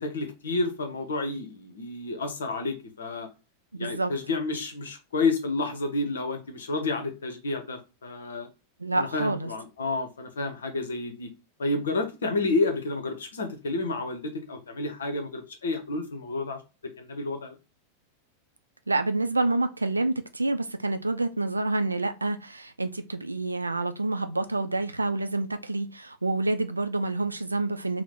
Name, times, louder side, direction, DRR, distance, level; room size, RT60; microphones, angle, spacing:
voice 1, 0.0-3.3 3.8-8.5 9.0-11.3 11.6-16.6 17.0-17.6, left 3 dB, 65° left, 0.7 m, -30 dB
voice 2, 3.7-4.1 8.8-9.5 18.9-28.0, right 2 dB, 80° right, 0.3 m, -28 dB
2.8 x 2.1 x 3.5 m
figure-of-eight pair, 90°, 0 cm